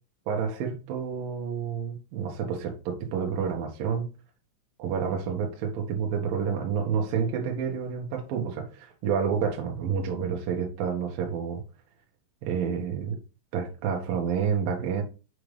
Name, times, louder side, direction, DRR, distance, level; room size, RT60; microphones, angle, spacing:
voice 1, 0.3-4.1 4.8-11.6 12.4-13.2 13.5-15.0, right 6 dB, 65° right, 2.5 m, -29 dB
6.6 x 5.7 x 3.3 m
omnidirectional pair, 5.6 m